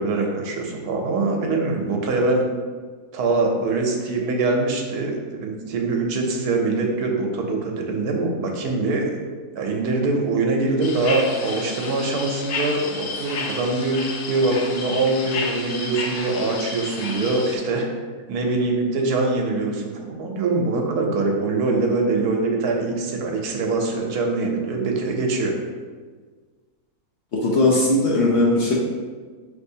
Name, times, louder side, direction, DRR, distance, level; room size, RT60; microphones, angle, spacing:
voice 1, 0.0-2.4 3.1-9.2 9.6-14.0 14.3-17.9 18.3-25.5, right 3 dB, 80° right, 1 dB, 1.1 m, -23 dB
sound 1, 10.8-17.6, left 3 dB, 85° left, 1.2 m, -31 dB
voice 2, 27.4-28.7, left 2 dB, 60° left, -4 dB, 0.8 m, -18 dB
5.4 x 3.1 x 2.7 m, 1.5 s
omnidirectional pair, 1.6 m